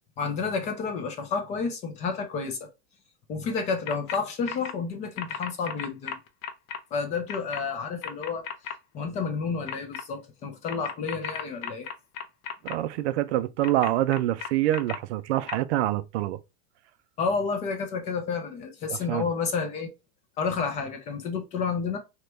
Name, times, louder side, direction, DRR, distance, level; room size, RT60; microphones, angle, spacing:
voice 1, 0.2-2.7 3.3-6.2 6.9-8.5 8.9-11.9 17.2-19.9 20.4-22.0, left 5 dB, 20° left, 0.3 m, -30 dB
sound 1, 3.9-4.2 4.5-4.7 5.2-6.8 7.3-7.6 8.0-8.7 9.7-10.0 10.7-12.7 13.6-15.0 15.5-15.6, left 7 dB, 65° left, 0.6 m, -34 dB
voice 2, 12.6-16.4 19.1-19.3, right 14 dB, 80° right, 0.5 m, -26 dB
3.0 x 2.1 x 3.2 m
supercardioid pair, 155°, 33 cm